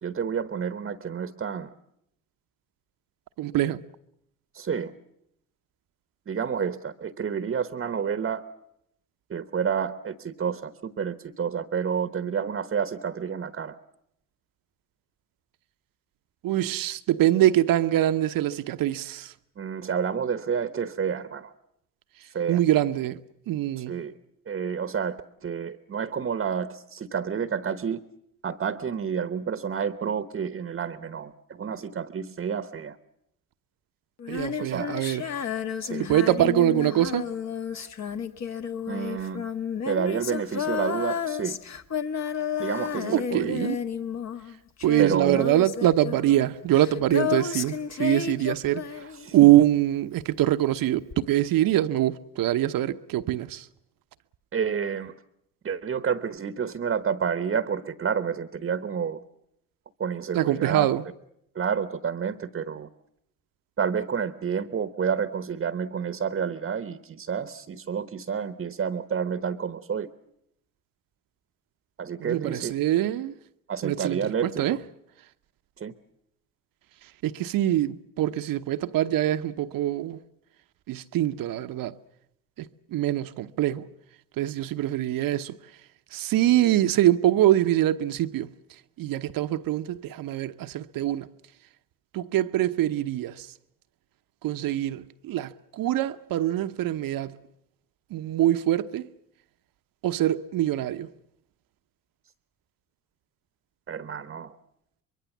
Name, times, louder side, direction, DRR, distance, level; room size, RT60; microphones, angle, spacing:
voice 1, 0.0-1.7 4.5-4.9 6.3-8.4 9.3-13.8 19.6-21.5 22.3-22.6 23.9-24.1 24.5-28.0 28.4-33.0 34.6-35.0 35.8-36.1 37.7-37.9 38.9-39.4 39.9-41.6 42.6-43.7 45.0-45.5 49.2-49.3 54.5-55.1 55.6-59.2 60.0-60.9 61.5-62.9 63.8-70.1 72.0-72.7 73.7-74.8 75.8-75.9 103.9-104.6, right 7 dB, 30° right, 1.1 m, -29 dB
voice 2, 3.4-3.8 16.4-19.3 22.5-23.2 23.5-23.9 34.3-35.2 36.0-37.3 43.1-43.8 44.8-48.9 49.3-53.7 60.3-61.0 72.2-73.3 73.8-74.8 77.2-80.2 80.9-81.9 82.6-83.9 84.4-85.6 86.1-88.5 89.0-91.3 92.1-93.5 94.4-97.4 98.1-99.1 100.0-101.1, right 13 dB, 55° right, 0.9 m, -24 dB
Female singing, 34.2-49.6 51.1-51.2, left 7 dB, 40° left, 1.4 m, -32 dB
24.0 x 22.5 x 7.2 m
supercardioid pair, 80°, 41 cm